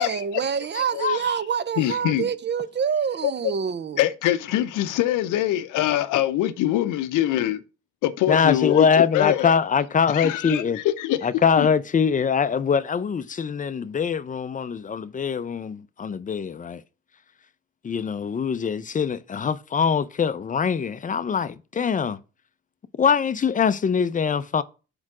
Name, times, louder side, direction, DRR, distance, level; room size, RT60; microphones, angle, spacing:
voice 1, 0.0-4.0, right 7 dB, 35° right, 0.5 m, -26 dB
voice 2, 0.7-1.2 8.3-10.8 11.2-16.8 17.8-22.2 23.0-24.6, left 6 dB, 25° left, 0.5 m, -23 dB
voice 3, 1.8-2.3 3.2-3.3 4.0-7.6 8.0-9.5 10.1-11.2 11.6-11.7, left 13 dB, 90° left, 0.7 m, -24 dB
4.8 x 4.5 x 6.0 m
cardioid pair, 90°, 30 cm